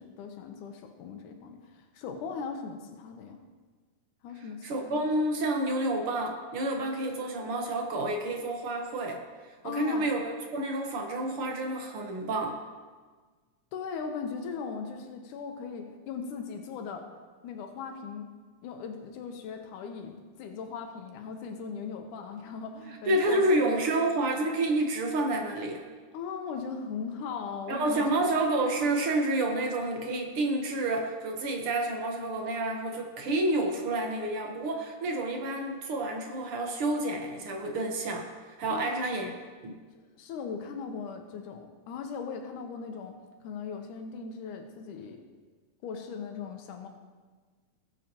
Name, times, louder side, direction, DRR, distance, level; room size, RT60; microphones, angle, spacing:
voice 1, 0.0-3.4 4.2-5.1 9.6-10.1 13.7-17.0 17.4-18.3 18.6-24.0 26.1-28.3 38.7-39.0 39.9-43.2 43.4-45.2 45.8-46.9, left 5 dB, 85° left, 4 dB, 2.4 m, -39 dB
voice 2, 4.6-9.2 9.6-12.6 23.1-25.8 27.7-39.3 39.6-39.8, right 2 dB, 55° right, 2 dB, 1.7 m, -29 dB
19.5 x 7.7 x 2.9 m, 1.4 s
omnidirectional pair, 3.5 m